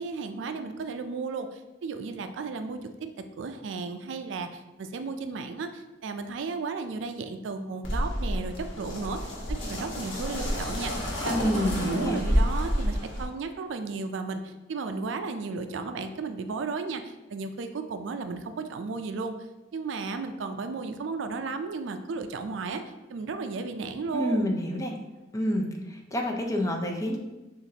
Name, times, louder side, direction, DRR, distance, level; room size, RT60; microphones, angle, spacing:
voice 1, 0.0-2.8 3.4-9.3 9.6-19.4 19.7-22.8 23.1-24.5, right 4 dB, 65° right, 7 dB, 0.4 m, -34 dB
sound 1, 7.8-13.2, equal, 70° left, 1.1 m, -29 dB
voice 2, 11.3-12.2 24.1-24.9 25.3-27.2, equal, 15° left, 1 dB, 0.5 m, -28 dB
6.9 x 2.5 x 2.7 m, 1.1 s
head